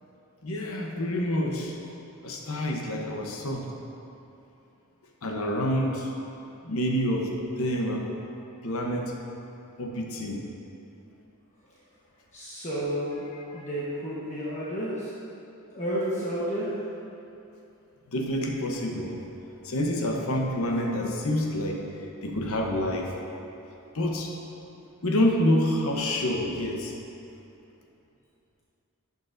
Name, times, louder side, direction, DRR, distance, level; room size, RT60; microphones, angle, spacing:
voice 1, 0.4-1.7 2.2-3.7 5.2-6.1 6.6-7.3 7.6-8.1 8.6-9.1 9.8-10.5 13.3-13.7 18.1-19.2 19.6-23.1 23.9-24.3 25.0-26.9, left 1 dB, 65° left, 1 dB, 0.9 m, -27 dB
voice 2, 12.3-13.2 13.5-15.1 15.7-16.7, equal, 35° left, -9 dB, 1.2 m, -31 dB
11.5 x 6.6 x 2.6 m, 2.8 s
head